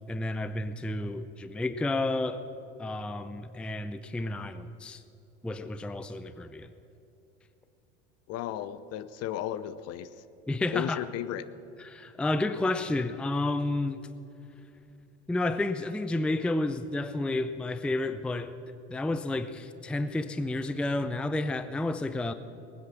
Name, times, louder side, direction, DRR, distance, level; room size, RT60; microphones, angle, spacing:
voice 1, 0.1-2.4 2.8-5.0 5.4-6.7 10.5-11.0 11.8-14.0 15.3-18.5 18.9-22.3, left 2 dB, 5° left, 0.5 m, -31 dB
voice 2, 8.3-10.1 10.7-11.4, left 11 dB, 50° left, 0.8 m, -34 dB
19.0 x 9.6 x 6.1 m
hypercardioid pair, 90°, 32 cm